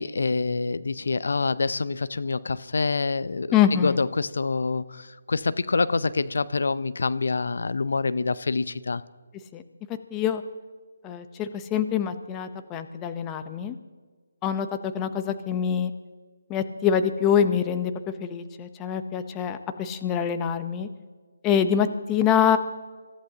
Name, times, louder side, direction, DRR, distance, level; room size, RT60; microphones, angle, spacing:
voice 1, 0.0-9.0, left 4 dB, 70° left, 16 dB, 0.6 m, -26 dB
voice 2, 3.5-3.9 9.5-9.6 10.1-10.4 11.0-13.7 14.4-15.9 16.5-17.9 18.2-20.9 21.4-22.6, left 8 dB, 15° left, 9 dB, 0.8 m, -25 dB
26.5 x 14.5 x 2.9 m, 1.4 s
figure-of-eight pair, 155°, 0 cm